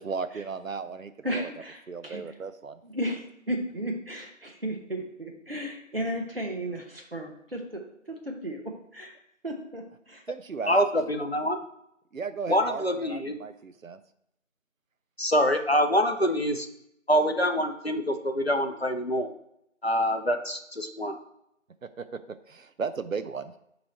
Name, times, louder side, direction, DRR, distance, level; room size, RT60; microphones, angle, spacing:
voice 1, 0.0-1.5 1.9-2.8 10.3-11.1 12.1-14.0 21.8-22.2 22.5-23.5, right 5 dB, 85° right, 11 dB, 0.6 m, -35 dB
voice 2, 1.2-2.2 2.8-8.6 8.9-9.2 9.4-10.2, equal, 50° right, 1 dB, 0.9 m, -34 dB
voice 3, 10.7-11.6 12.5-13.4 15.2-16.7 17.1-19.3 19.8-21.1, equal, 55° left, 5 dB, 0.6 m, -25 dB
7.4 x 3.1 x 4.2 m, 0.79 s
figure-of-eight pair, 175°, 39 cm